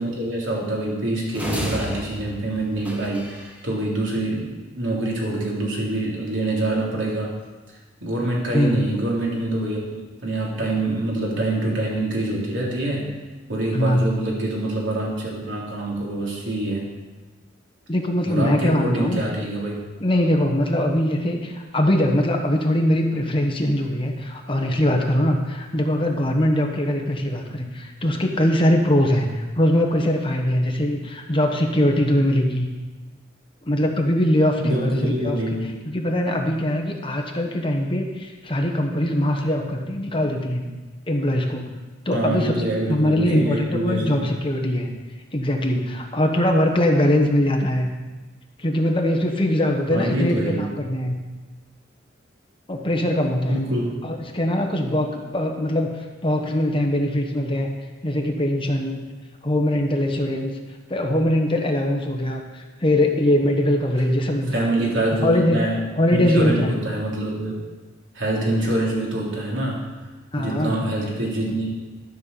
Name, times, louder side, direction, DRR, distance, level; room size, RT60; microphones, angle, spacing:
voice 1, 0.0-7.3 8.0-13.1 13.5-16.9 18.2-19.7 34.6-35.7 42.1-44.3 49.9-50.7 53.5-54.0 64.5-65.9 66.1-67.6 68.1-69.8 70.4-71.7, right 1 dB, 80° right, -3 dB, 3.3 m, -25 dB
sound 1, 1.3-3.6, equal, 10° right, 1.4 m, -32 dB
voice 2, 8.5-9.0 13.7-14.2 17.9-19.2 20.0-32.7 33.6-35.4 35.8-40.7 41.1-41.7 42.0-42.5 42.9-44.9 45.3-47.9 48.6-51.2 52.7-53.6 54.0-55.9 56.2-57.7 58.0-59.0 59.4-60.5 60.9-64.7 65.2-65.6 66.0-66.7 70.3-70.8, left 1 dB, 25° left, 2 dB, 1.2 m, -21 dB
13.0 x 5.6 x 6.9 m, 1.2 s
head